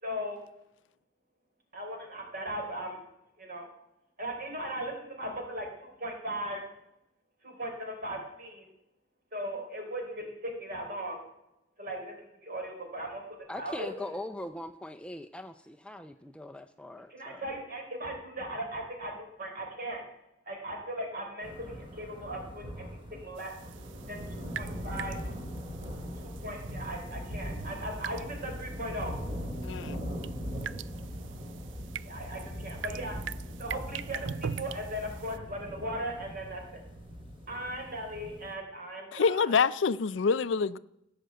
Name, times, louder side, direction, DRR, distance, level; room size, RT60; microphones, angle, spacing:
voice 1, 0.0-0.4 1.7-3.0 3.4-3.7 4.2-6.6 7.4-8.7 9.3-11.2 11.8-13.9 17.1-20.0 20.5-23.5 24.1-25.2 26.2-29.2 32.0-33.2 33.6-36.8 37.5-39.7, right 1 dB, 50° right, 2 dB, 3.7 m, -38 dB
voice 2, 13.5-17.5, left 1 dB, 5° left, 7 dB, 0.4 m, -41 dB
sound 1, 21.4-38.5, equal, 30° right, 2.4 m, -40 dB
sound 2, 23.4-35.4, right 8 dB, 80° right, 0.4 m, -43 dB
voice 3, 29.6-30.0 39.1-40.8, left 5 dB, 80° left, 17 dB, 0.5 m, -26 dB
16.0 x 6.6 x 7.8 m, 0.86 s
head